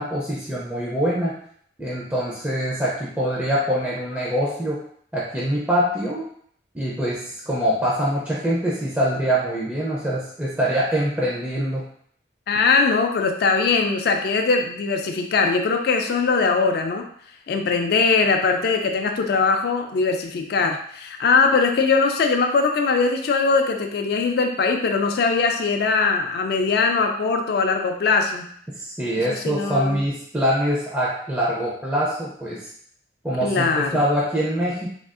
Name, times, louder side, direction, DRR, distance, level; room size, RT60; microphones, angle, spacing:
voice 1, 0.0-1.3 1.8-4.8 5.1-6.2 6.7-7.2 7.5-11.8 28.8-32.6 33.2-34.9, equal, 10° right, -6 dB, 0.4 m, -24 dB
voice 2, 12.5-17.1 17.5-28.5 29.1-30.0 33.4-34.0, left 4 dB, 55° left, 4 dB, 0.3 m, -21 dB
3.5 x 2.3 x 2.4 m, 0.63 s
head